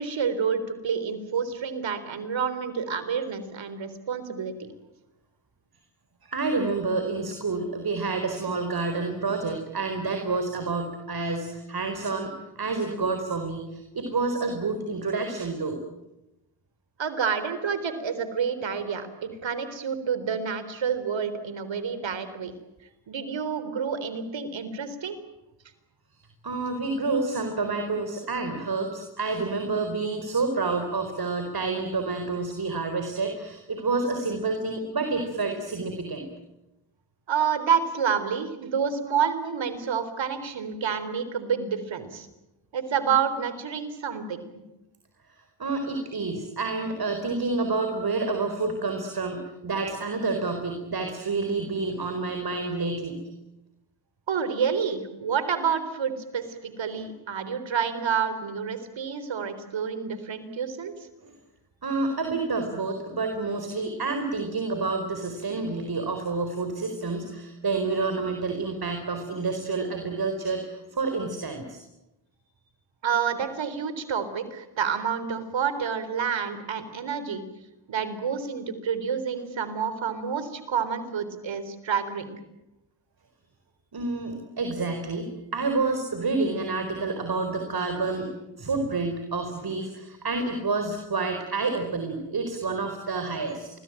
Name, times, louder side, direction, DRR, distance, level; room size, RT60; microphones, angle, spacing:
voice 1, 0.0-4.5 17.0-22.5 23.1-25.2 37.3-42.3 42.7-44.4 54.3-60.9 73.0-77.4 77.9-82.4, right 7 dB, 75° right, 11 dB, 4.0 m, -28 dB
voice 2, 6.2-15.8 26.4-36.3 45.6-53.2 56.9-57.0 61.2-61.3 61.8-71.8 83.9-93.7, right 3 dB, 50° right, 6 dB, 4.5 m, -29 dB
28.5 x 21.5 x 9.1 m, 0.97 s
cardioid pair, 55°, 46 cm